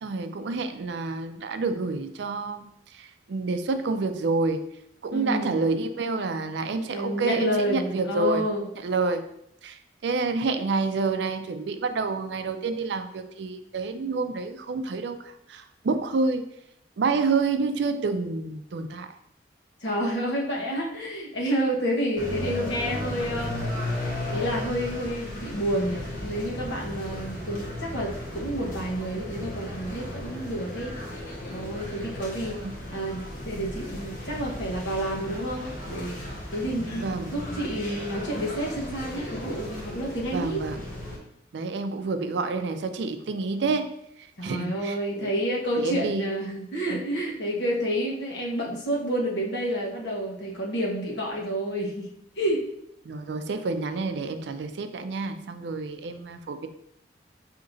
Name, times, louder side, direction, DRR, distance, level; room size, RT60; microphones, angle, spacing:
voice 1, 0.0-4.7 5.0-8.4 8.8-9.3 9.6-16.5 17.0-19.1 32.4-32.7 37.0-37.4 40.3-40.8 41.5-43.9 44.2-45.3 45.8-46.3 53.0-56.7, right 3 dB, 70° right, 9 dB, 0.4 m, -28 dB
voice 2, 5.1-5.5 6.9-8.7 19.8-23.7 24.0-31.0 31.5-32.6 32.9-36.3 36.5-40.7 44.4-52.1 52.4-52.6, equal, 75° left, -2 dB, 1.1 m, -29 dB
sound 1, 22.2-41.2, left 1 dB, 45° left, 1.1 m, -35 dB
6.2 x 2.8 x 2.6 m, 0.75 s
head